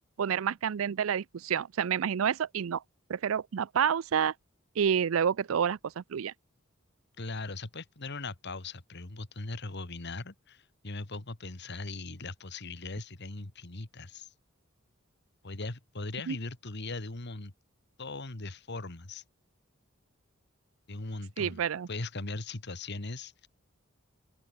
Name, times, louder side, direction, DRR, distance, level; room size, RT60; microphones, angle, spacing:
voice 1, 0.2-2.8 3.1-4.3 4.8-6.3 16.3-16.4 21.4-21.9, right 8 dB, 80° right, 0.4 m, -29 dB
voice 2, 7.2-14.3 15.4-17.5 18.0-19.2 20.9-21.6 21.9-23.5, left 3 dB, 60° left, 1.9 m, -39 dB
open air
head